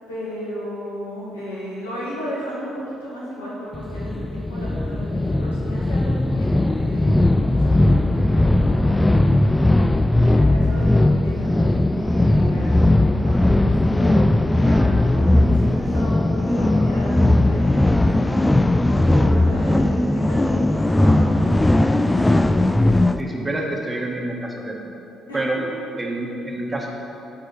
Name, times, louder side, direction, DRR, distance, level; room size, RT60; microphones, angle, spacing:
voice 1, 0.1-9.6 10.2-18.3 19.1-21.4 25.3-25.4, equal, 85° left, -8 dB, 2.1 m, -34 dB
sound 1, 3.7-23.2, left 1 dB, 15° left, 0.4 m, -18 dB
voice 2, 21.0-21.3 23.2-24.8 25.3-25.6 26.0-26.9, right 1 dB, 20° right, 0 dB, 1.6 m, -28 dB
7.6 x 4.7 x 7.0 m, 2.9 s
figure-of-eight pair, 45°, 0 cm